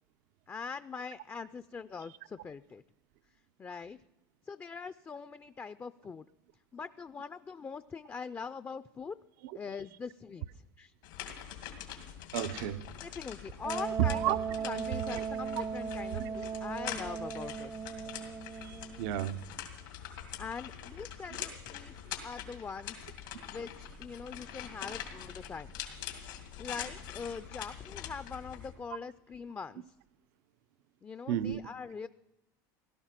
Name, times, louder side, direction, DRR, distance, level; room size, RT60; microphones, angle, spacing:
voice 1, 0.5-2.8 3.6-4.0 4.5-6.3 6.7-9.1 9.5-10.9 13.0-14.4 14.6-17.8 20.4-21.9 22.2-23.0 23.5-25.7 26.6-29.9 31.0-32.1, left 5 dB, 20° left, 0.4 m, -42 dB
sound 1, 11.0-28.7, left 10 dB, 85° left, 2.2 m, -44 dB
voice 2, 12.3-12.9 14.2-14.4 15.1-15.2 16.1-16.4 18.6-19.4 31.3-31.6, right 11 dB, 75° right, 0.6 m, -33 dB
Wind instrument woodwind instrument, 13.6-19.2, right 6 dB, 30° right, 0.5 m, -38 dB
17.0 x 12.0 x 5.9 m
supercardioid pair, 95°, 10 cm